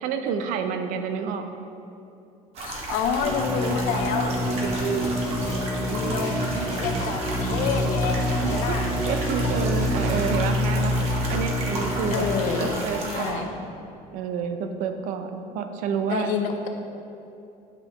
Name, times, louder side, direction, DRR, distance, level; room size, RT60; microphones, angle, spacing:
voice 1, 0.0-1.4 4.8-5.1 6.4-6.7 8.3-11.0 11.3-12.3 12.6-13.5 14.1-16.3, right 6 dB, 65° right, 7 dB, 0.5 m, -29 dB
sound 1, 2.5-13.3, right 1 dB, 45° right, 1.0 m, -34 dB
voice 2, 2.6-4.4 5.8-6.3 6.8-8.9 12.1-13.5 16.1-16.7, left 6 dB, 65° left, 5 dB, 0.7 m, -28 dB
sound 2, 3.2-12.7, left 1 dB, 15° right, 0.8 m, -27 dB
sound 3, 4.3-10.3, left 1 dB, 20° left, 0.9 m, -35 dB
9.1 x 5.6 x 2.9 m, 2.8 s
cardioid pair, 175°, 15 cm